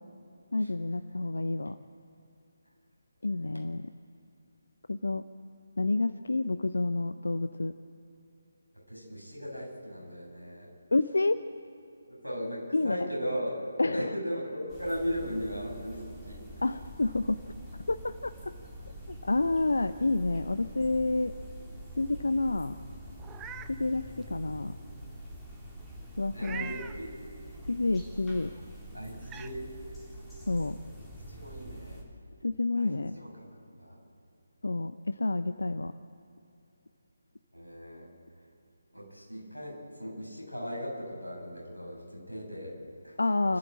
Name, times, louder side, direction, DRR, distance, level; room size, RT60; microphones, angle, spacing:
voice 1, 0.5-1.8 3.2-3.8 4.9-5.2 5.8-7.7 10.9-11.4 12.7-13.0 13.8-14.1 16.6-17.4 17.9-18.3 19.1-21.3 22.0-22.8 23.8-24.7 26.2-26.7 27.7-28.5 30.5-30.8 32.4-33.1 34.6-35.9 43.2-43.6, left 2 dB, 65° left, 12 dB, 0.7 m, -29 dB
voice 2, 8.7-10.7 12.1-16.6 26.3-27.2 28.9-29.7 31.3-32.0 32.7-34.0 37.5-38.1 38.9-43.6, equal, 90° left, -1 dB, 8.0 m, -38 dB
sound 1, 14.7-32.0, right 1 dB, 5° left, 3.4 m, -46 dB
Meow, 23.2-23.7 24.2-24.3 26.4-27.0 28.6-28.7 29.2-29.5, right 9 dB, 10° right, 0.6 m, -42 dB
28.5 x 14.0 x 8.8 m, 2.7 s
figure-of-eight pair, 150°, 0 cm